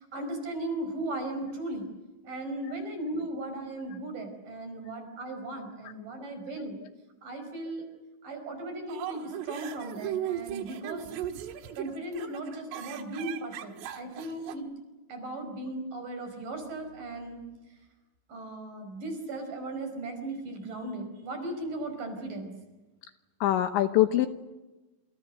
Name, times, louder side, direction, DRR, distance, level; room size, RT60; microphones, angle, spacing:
voice 1, 0.0-1.9 2.2-6.8 7.2-7.8 8.2-11.1 11.7-14.7 15.1-17.4 18.3-22.5, right 2 dB, 45° right, 6 dB, 6.4 m, -37 dB
sound 1, 8.9-14.5, right 11 dB, 75° right, 4.1 m, -37 dB
voice 2, 23.4-24.3, left 13 dB, 75° left, 8 dB, 3.0 m, -25 dB
29.5 x 27.5 x 6.6 m, 1.1 s
omnidirectional pair, 5.8 m